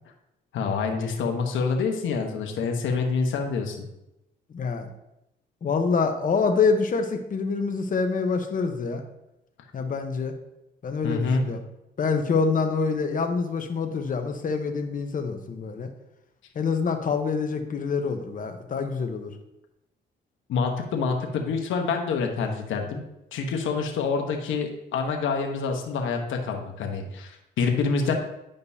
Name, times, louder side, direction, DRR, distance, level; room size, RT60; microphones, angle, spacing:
voice 1, 0.5-3.8 11.0-11.5 20.5-23.0 23.3-28.1, left 5 dB, 80° left, 3 dB, 1.1 m, -27 dB
voice 2, 4.5-4.9 5.6-9.0 9.7-10.3 10.8-11.6 12.0-15.9 16.5-19.3, left 5 dB, 45° left, 5 dB, 1.0 m, -26 dB
9.9 x 5.2 x 2.7 m, 0.88 s
cardioid pair, 90°, 20 cm